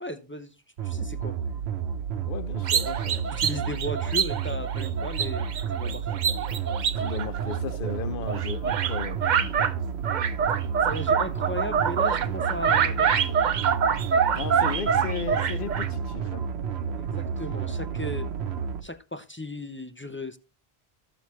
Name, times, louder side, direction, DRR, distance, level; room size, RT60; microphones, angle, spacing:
voice 1, 0.0-0.5 0.8-1.4 3.3-6.1 10.8-13.3 16.9-18.3 18.8-20.4, left 1 dB, 20° left, 0.4 m, -36 dB
sound 1, 0.8-18.8, right 7 dB, 80° right, 1.0 m, -31 dB
voice 2, 2.3-3.4 6.9-9.6 14.3-16.5, left 7 dB, 60° left, 0.9 m, -36 dB
sound 2, 2.6-7.9 8.3-9.7 10.0-15.9, right 7 dB, 55° right, 0.6 m, -26 dB
13.5 x 7.0 x 3.1 m
omnidirectional pair, 1.1 m